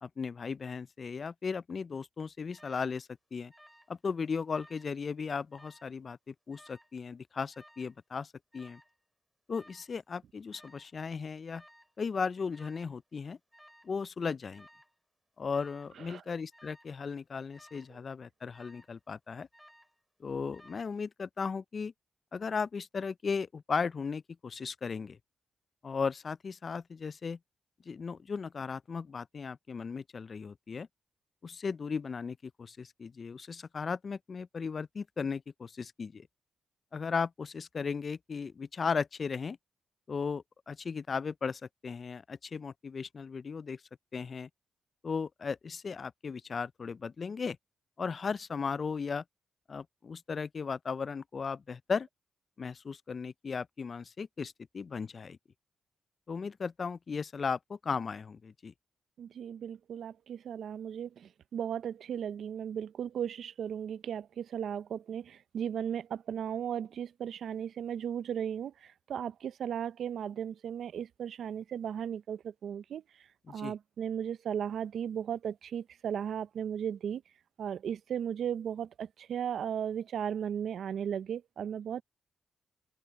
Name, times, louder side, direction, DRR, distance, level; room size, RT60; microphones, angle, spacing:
voice 1, 0.0-3.5 3.9-8.8 9.5-11.6 12.0-13.4 13.8-14.7 15.4-19.5 20.2-21.9 22.3-25.2 25.8-27.4 27.9-30.9 31.4-36.3 36.9-39.6 40.1-43.8 44.1-44.5 45.0-47.6 48.0-49.2 49.7-52.1 52.6-55.4 56.3-58.7 73.5-73.7, left 5 dB, 50° left, 0.4 m, -36 dB
Alarm, 2.5-2.9 3.5-4.0 4.3-4.9 5.5-5.9 6.5-7.0 7.5-8.0 8.5-9.0 9.5-9.9 10.5-10.9 11.5-11.9 12.5-13.0 13.5-14.0 14.5-14.9 15.5-15.9 16.5-17.0 17.5-17.9 18.5-19.0 19.5-20.0 20.5-21.0, equal, ahead, 2.9 m, -59 dB
voice 2, 59.2-77.2 77.6-82.0, right 8 dB, 75° right, 0.6 m, -36 dB
supercardioid pair, 50°, 0 cm